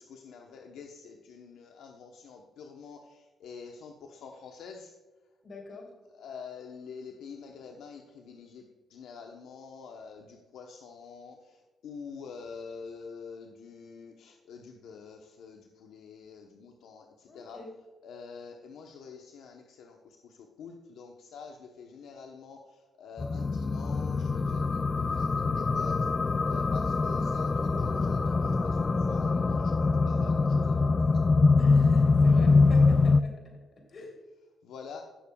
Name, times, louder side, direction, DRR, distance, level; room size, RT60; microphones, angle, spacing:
voice 1, 0.0-3.0 3.4-4.9 6.2-8.6 8.9-11.3 11.8-17.1 17.3-17.6 18.0-20.0 20.6-22.6 23.0-25.9 26.4-28.6 28.8-30.7 34.6-35.0, left 5 dB, 80° left, 2 dB, 0.9 m, -46 dB
voice 2, 5.4-6.0 17.3-17.8 31.5-34.2, left 2 dB, 45° left, 2 dB, 3.2 m, -43 dB
sound 1, 23.2-33.2, left 4 dB, 30° left, 0.3 m, -24 dB
16.5 x 6.9 x 2.3 m, 1.3 s
cardioid pair, 90°, 0 cm